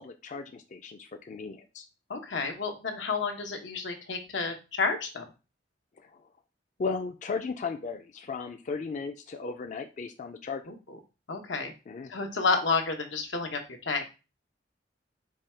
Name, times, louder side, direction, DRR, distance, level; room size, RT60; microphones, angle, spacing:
voice 1, 0.0-1.9 6.0-6.1 6.8-10.6 11.9-12.1, left 4 dB, 40° left, 6 dB, 0.4 m, -36 dB
voice 2, 2.1-5.3 10.7-11.0 11.3-11.7 12.1-14.1, left 4 dB, 90° left, 4 dB, 0.9 m, -30 dB
4.8 x 2.3 x 4.3 m, 0.30 s
head